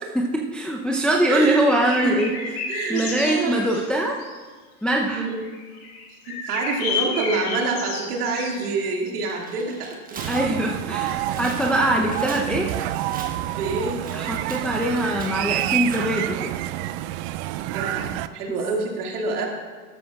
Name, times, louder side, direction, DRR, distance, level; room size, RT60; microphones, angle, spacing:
voice 1, 0.1-4.2 4.8-5.3 10.3-12.7 14.1-16.6, right 1 dB, ahead, -1 dB, 0.7 m, -23 dB
voice 2, 1.3-1.7 2.0-2.1 2.7-3.6 5.1-5.4 6.3-10.2 13.5-14.0 17.7-19.5, right 4 dB, 75° right, 0 dB, 2.4 m, -27 dB
sound 1, 1.5-4.4 5.4-9.0, left 5 dB, 65° left, 3.4 m, -31 dB
Tearing, 9.1-16.0, right 4 dB, 20° right, 1.3 m, -43 dB
sound 2, 10.2-18.3, right 14 dB, 50° right, 0.5 m, -28 dB
13.5 x 12.0 x 2.4 m, 1.4 s
hypercardioid pair, 100°, 45 cm